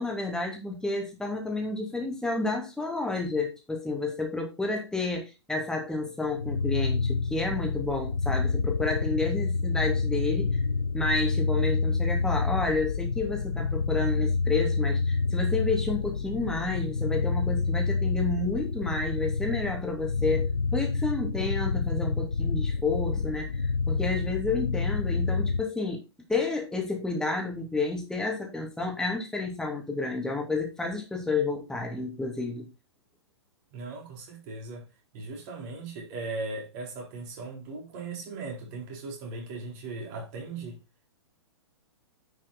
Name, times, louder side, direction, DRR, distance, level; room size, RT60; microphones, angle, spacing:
voice 1, 0.0-10.6 10.9-26.0 26.3-32.7, left 3 dB, 5° left, 3.0 m, -30 dB
sound 1, 6.3-25.6, left 4 dB, 85° left, 0.6 m, -28 dB
voice 2, 33.7-34.9 35.1-40.8, right 3 dB, 40° right, 4.0 m, -38 dB
11.0 x 6.2 x 4.1 m
figure-of-eight pair, 110°, 14 cm